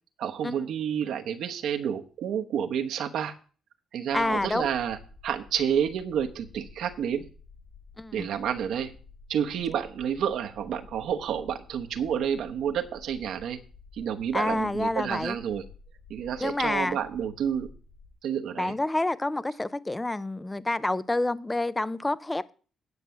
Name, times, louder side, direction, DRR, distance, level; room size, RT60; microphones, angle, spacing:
voice 1, 0.2-3.3 3.9-5.0 5.2-7.2 8.1-8.9 9.3-13.6 13.9-15.6 16.1-17.7 18.2-18.7, right 8 dB, 75° right, 1.1 m, -29 dB
sound 1, 4.1-18.1, left 4 dB, 80° left, 4.1 m, -51 dB
voice 2, 4.1-4.7 8.0-8.3 14.3-15.4 16.4-17.0 18.6-22.5, left 2 dB, 15° left, 0.6 m, -28 dB
9.6 x 6.0 x 7.0 m
cardioid pair, 90°, 0 cm